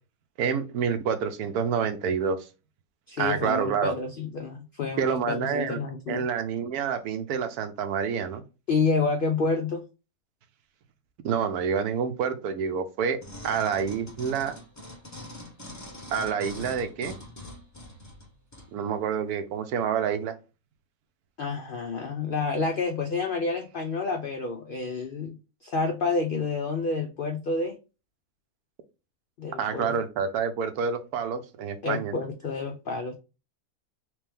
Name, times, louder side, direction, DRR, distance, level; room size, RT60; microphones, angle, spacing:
voice 1, 0.4-2.4 3.2-3.9 5.0-5.8 6.1-8.4 11.2-14.5 16.1-17.1 18.7-20.3 29.6-32.1, right 7 dB, 85° right, 9 dB, 1.1 m, -28 dB
voice 2, 3.1-6.2 8.7-9.8 21.4-25.4 25.6-27.7 29.4-30.0 31.8-33.1, left 4 dB, 75° left, 4 dB, 0.5 m, -29 dB
sound 1, 13.2-18.7 19.3-19.4, left 1 dB, 20° left, 0.5 m, -43 dB
3.3 x 3.1 x 3.4 m, 0.30 s
omnidirectional pair, 1.6 m